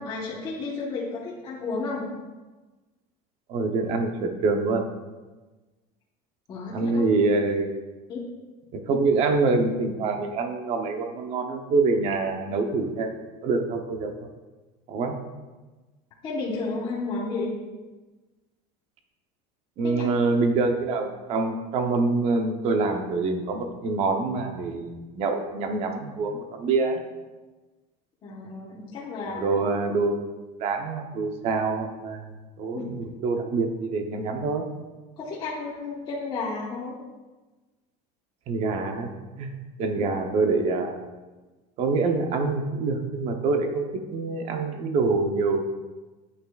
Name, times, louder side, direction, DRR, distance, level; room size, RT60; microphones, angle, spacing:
voice 1, 0.0-2.1 6.5-7.0 8.1-8.2 16.2-17.5 19.8-20.1 28.2-29.6 35.2-37.0, left 3 dB, 25° left, -6 dB, 1.2 m, -32 dB
voice 2, 3.5-4.9 6.7-7.7 8.7-13.2 13.4-14.3 14.9-15.2 19.8-27.0 29.3-30.3 30.6-34.6 38.5-39.1 39.4-41.0 41.8-45.6, right 3 dB, 35° right, 5 dB, 0.8 m, -25 dB
9.8 x 8.3 x 2.4 m, 1.2 s
cardioid pair, 180°, 19 cm